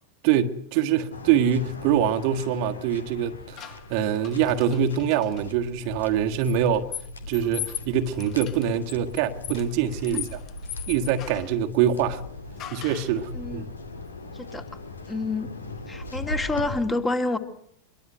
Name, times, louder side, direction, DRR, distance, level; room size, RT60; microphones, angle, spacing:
voice 1, 0.2-6.9 7.3-10.4 10.9-12.2 12.7-13.7, right 9 dB, 45° right, 1.6 m, -24 dB
Waves surf, 1.1-16.8, left 1 dB, 75° left, 2.6 m, -39 dB
sound 1, 3.6-5.4 6.4-11.6 12.6-13.2, left 11 dB, 35° left, 1.2 m, -39 dB
voice 2, 13.3-13.7 14.3-14.6 15.1-15.5 15.9-17.4, left 2 dB, 15° left, 2.6 m, -28 dB
24.0 x 22.5 x 7.9 m
figure-of-eight pair, 90°, 0 cm